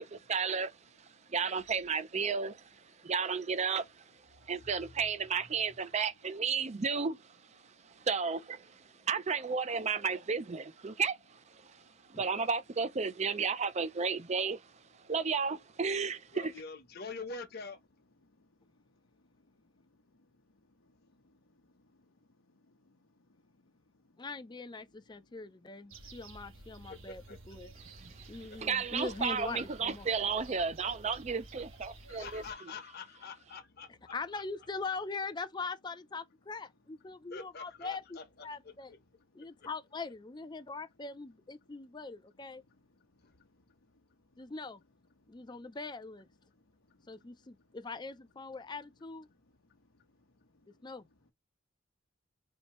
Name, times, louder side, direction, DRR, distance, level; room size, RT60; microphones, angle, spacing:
voice 1, 0.0-16.5 27.8-32.7, right 5 dB, 35° right, 0.5 m, -34 dB
voice 2, 11.6-12.2 18.2-24.2 26.0-26.2 28.0-28.4 39.3-39.6 43.1-44.4 45.2-45.5 46.7-47.3 49.7-50.9, left 2 dB, 80° left, 0.9 m, -70 dB
voice 3, 16.3-17.8 26.9-27.4 32.1-34.4 37.3-38.2 38.9-39.0 43.2-43.3, left 4 dB, 50° left, 1.0 m, -45 dB
voice 4, 24.2-27.7 28.3-30.1 34.1-38.9 39.3-42.6 44.4-44.8 45.3-46.3 47.1-49.3 50.7-51.1, left 4 dB, 20° left, 0.5 m, -42 dB
sound 1, 25.9-32.5, right 2 dB, 75° right, 1.5 m, -52 dB
4.4 x 2.7 x 3.0 m
head